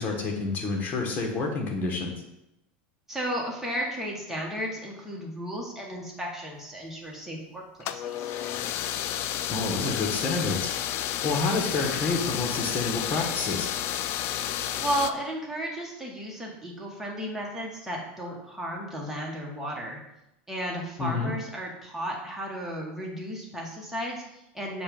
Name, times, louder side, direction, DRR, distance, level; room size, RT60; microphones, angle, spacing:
voice 1, 0.0-2.1 9.5-10.7 11.2-13.7 21.0-21.3, left 3 dB, 35° left, 1 dB, 1.4 m, -28 dB
voice 2, 3.1-8.3 14.8-20.0 20.5-24.8, equal, 5° right, -2 dB, 1.4 m, -34 dB
sound 1, 7.8-15.1, left 11 dB, 50° left, 0.4 m, -31 dB
6.9 x 2.5 x 5.3 m, 0.88 s
supercardioid pair, 120°, 5 cm